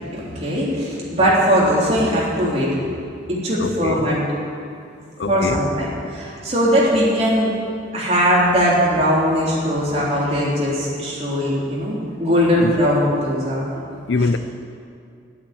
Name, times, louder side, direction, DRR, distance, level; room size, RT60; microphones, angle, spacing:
voice 1, 0.1-2.7 3.3-4.2 5.3-7.5 7.9-13.6, equal, 35° right, -6 dB, 3.4 m, -19 dB
voice 2, 3.6-4.1 5.2-5.6 12.6-12.7 14.1-14.4, left 3 dB, 80° left, 11 dB, 0.6 m, -23 dB
11.5 x 8.6 x 8.4 m, 2.4 s
head